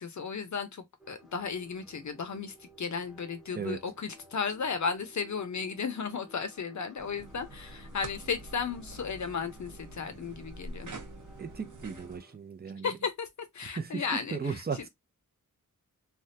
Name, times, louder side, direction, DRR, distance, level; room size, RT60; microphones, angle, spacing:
voice 1, 0.0-10.9 12.8-13.3 13.5-14.4, left 5 dB, 60° left, 0.7 m, -34 dB
sound 1, 1.0-12.4, right 1 dB, ahead, 0.8 m, -57 dB
sound 2, 7.0-12.2, right 2 dB, 60° right, 0.9 m, -46 dB
voice 2, 11.4-12.9 13.7-14.9, right 5 dB, 30° right, 0.5 m, -36 dB
3.4 x 2.2 x 2.7 m
wide cardioid pair, 120°, 33 cm